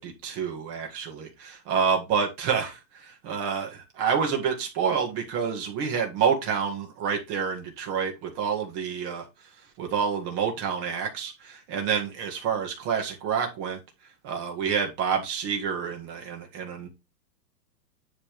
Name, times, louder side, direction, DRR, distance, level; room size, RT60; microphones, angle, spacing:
voice 1, 0.0-9.2 9.8-13.8 14.2-16.9, right 6 dB, 20° right, 1.6 m, -28 dB
9.8 x 3.4 x 4.5 m
hypercardioid pair, 160°, 50 cm